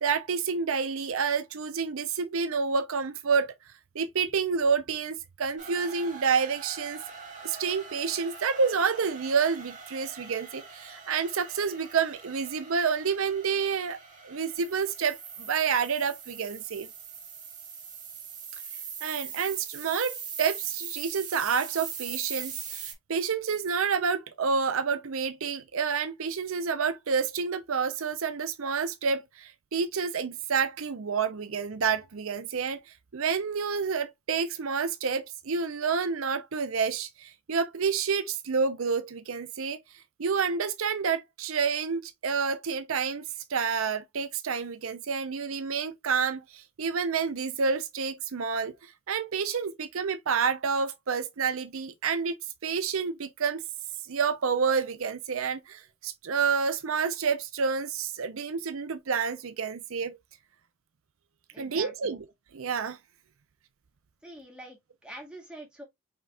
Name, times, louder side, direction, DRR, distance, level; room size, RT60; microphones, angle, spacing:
voice 1, 0.0-3.5 3.9-7.0 7.4-14.0 14.2-16.9 19.0-32.8 33.1-39.8 40.2-48.7 49.1-52.4 52.6-53.6 54.1-60.2 61.6-62.2 62.5-63.0, right 5 dB, 75° right, 0.6 m, -29 dB
sound 1, 5.6-22.9, right 6 dB, 35° right, 1.8 m, -42 dB
voice 2, 61.5-62.1 64.2-65.8, right 1 dB, 5° right, 1.8 m, -45 dB
5.2 x 4.2 x 2.3 m
head